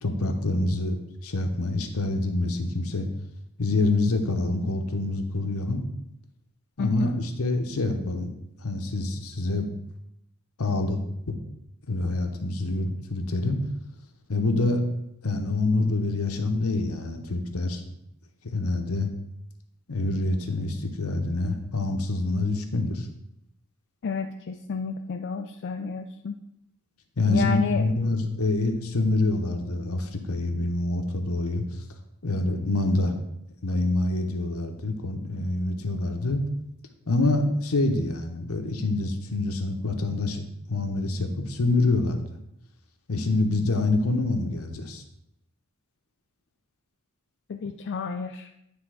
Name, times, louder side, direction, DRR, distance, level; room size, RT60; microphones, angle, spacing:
voice 1, 0.0-3.1 3.6-5.8 6.8-8.3 8.6-9.7 10.6-11.0 11.3-11.4 11.9-13.6 14.3-14.8 15.2-17.8 18.4-19.1 19.9-23.1 27.2-31.6 32.2-33.1 33.6-36.4 37.1-40.4 40.7-42.2 43.1-45.0, left 2 dB, 75° left, 5 dB, 0.9 m, -26 dB
voice 2, 6.8-7.2 24.0-26.4 27.2-27.8 47.5-48.5, left 5 dB, 50° left, 4 dB, 0.4 m, -31 dB
9.6 x 3.5 x 4.9 m, 0.80 s
head